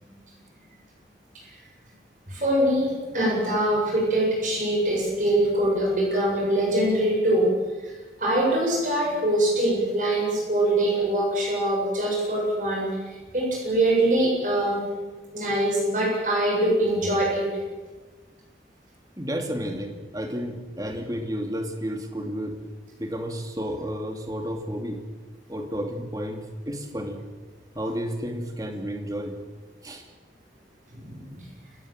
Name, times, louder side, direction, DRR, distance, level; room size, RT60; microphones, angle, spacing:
voice 1, 2.3-7.5 7.8-7.9 8.2-14.9 15.3-17.4 30.9-31.5, right 1 dB, 45° right, -2 dB, 7.7 m, -23 dB
voice 2, 19.2-22.6 23.0-25.0 25.5-27.2 27.7-29.4 29.8-30.0, equal, 20° right, 4 dB, 2.7 m, -31 dB
28.5 x 17.0 x 7.7 m, 1.3 s
head